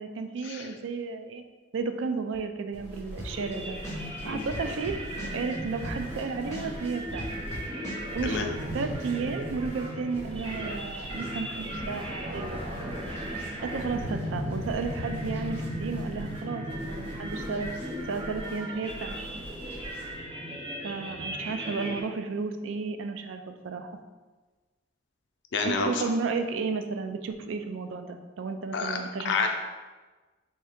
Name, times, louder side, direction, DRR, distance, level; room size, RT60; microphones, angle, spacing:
voice 1, 0.0-1.4 1.7-3.8 4.2-5.0 5.3-7.3 8.1-8.5 8.7-12.9 13.6-17.7 18.1-19.1 20.8-24.0 25.6-29.4, right 4 dB, 85° right, 7 dB, 0.4 m, -33 dB
sound 1, 2.7-20.2, equal, 10° right, 1.1 m, -44 dB
sound 2, 3.2-3.5 3.8-6.2 6.5-8.3, equal, 15° left, 0.8 m, -38 dB
sound 3, 3.3-22.0, equal, 30° right, 0.6 m, -36 dB
voice 2, 25.5-26.0 28.7-29.0 29.2-29.5, left 4 dB, 65° left, 3 dB, 0.5 m, -28 dB
3.5 x 2.8 x 3.4 m, 1.3 s
head